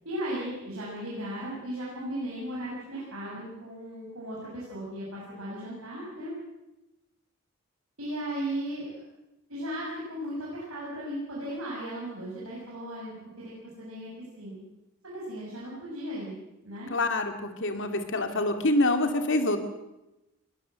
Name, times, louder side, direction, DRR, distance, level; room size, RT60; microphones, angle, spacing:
voice 1, 0.0-6.3 8.0-9.0 9.5-13.5 13.8-14.1 14.4-14.6 15.1-16.3 16.6-16.9, right 1 dB, 70° right, -6 dB, 6.9 m, -36 dB
voice 2, 16.9-19.6, left 2 dB, 60° left, 7 dB, 2.5 m, -26 dB
21.0 x 19.0 x 7.7 m, 0.94 s
head